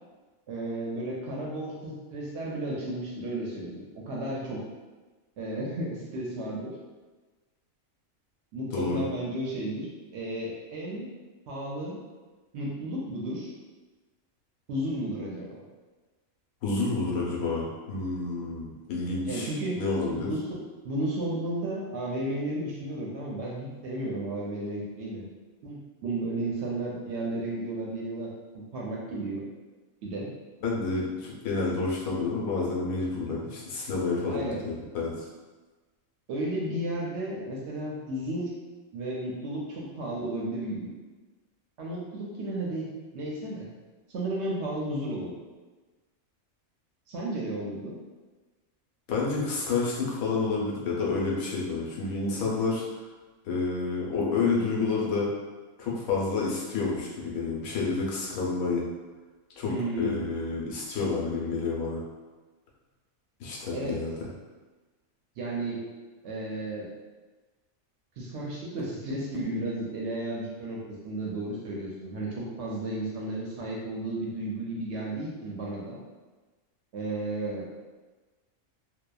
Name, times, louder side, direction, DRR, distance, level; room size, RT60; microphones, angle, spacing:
voice 1, 0.5-4.6 5.4-6.8 8.5-9.9 10.1-11.1 11.5-12.0 12.5-13.5 14.7-15.6 19.3-19.8 20.1-25.3 25.6-29.4 30.0-30.3 34.3-34.6 36.3-38.5 38.9-40.9 41.8-42.9 43.1-43.7 44.1-45.4 47.1-48.0 59.6-60.2 63.7-64.0 65.4-65.8 66.2-66.9 68.2-76.0 76.9-77.7, right 1 dB, 65° right, -4 dB, 0.7 m, -33 dB
voice 2, 8.7-9.0 16.6-20.3 30.6-35.2 49.1-53.0 53.4-55.3 55.8-58.8 59.6-62.0 63.4-64.1, left 4 dB, 85° left, -4 dB, 1.1 m, -29 dB
2.8 x 2.1 x 2.2 m, 1.3 s
omnidirectional pair, 1.4 m